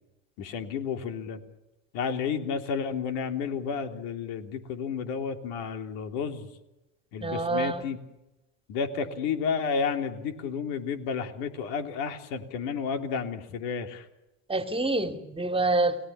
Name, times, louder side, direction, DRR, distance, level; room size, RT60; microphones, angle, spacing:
voice 1, 0.4-1.4 1.9-6.5 7.1-8.0 8.7-14.0, left 6 dB, 65° left, 6 dB, 3.4 m, -31 dB
voice 2, 7.2-7.9 14.5-16.0, right 2 dB, 15° right, 8 dB, 2.6 m, -27 dB
30.0 x 18.5 x 7.2 m, 0.97 s
hypercardioid pair, 90°, 40 cm